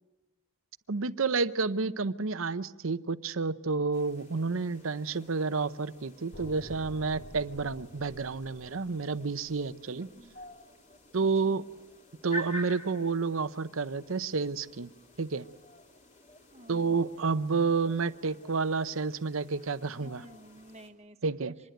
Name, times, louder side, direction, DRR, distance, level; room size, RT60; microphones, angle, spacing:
voice 1, 0.9-10.1 11.1-11.6 12.2-14.9 15.2-15.5 16.7-20.2 21.2-21.5, right 4 dB, 65° right, 14 dB, 0.8 m, -30 dB
sound 1, 3.9-20.9, equal, 35° left, 3.3 m, -49 dB
sound 2, 6.3-10.5, equal, 60° left, 2.6 m, -49 dB
voice 2, 9.9-10.3 11.2-11.6 16.5-17.0 20.0-21.2 21.6-21.7, right 1 dB, 30° right, 9 dB, 1.2 m, -52 dB
26.0 x 21.0 x 9.1 m, 1.1 s
head